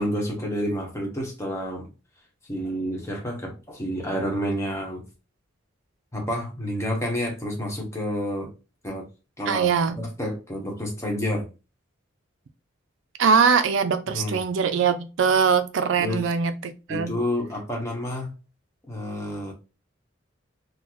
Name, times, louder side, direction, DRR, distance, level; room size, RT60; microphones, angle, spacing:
voice 1, 0.0-1.9 2.5-5.0 6.1-8.5 8.8-9.1 9.4-11.5 14.1-14.4 16.0-16.3 16.9-18.3 18.9-19.5, equal, 15° left, 0.9 m, -29 dB
voice 2, 9.5-10.0 13.2-17.1, right 6 dB, 70° right, 0.4 m, -22 dB
3.8 x 2.0 x 3.0 m
head